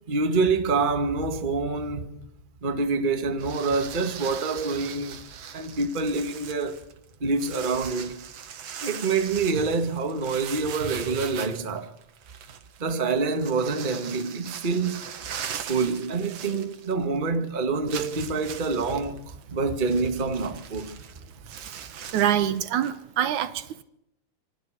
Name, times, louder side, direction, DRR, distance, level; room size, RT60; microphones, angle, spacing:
voice 1, 0.1-2.1 2.6-5.2 5.5-6.8 7.2-8.3 8.8-11.9 12.8-15.0 15.6-21.0 21.4-21.5, right 4 dB, 20° right, 1.4 m, -26 dB
sound 1, 3.4-17.2 17.4-17.5 17.9-23.0, right 8 dB, 60° right, 2.4 m, -40 dB
voice 2, 22.1-23.8, right 10 dB, 75° right, 2.6 m, -26 dB
27.0 x 23.5 x 6.7 m
omnidirectional pair, 3.4 m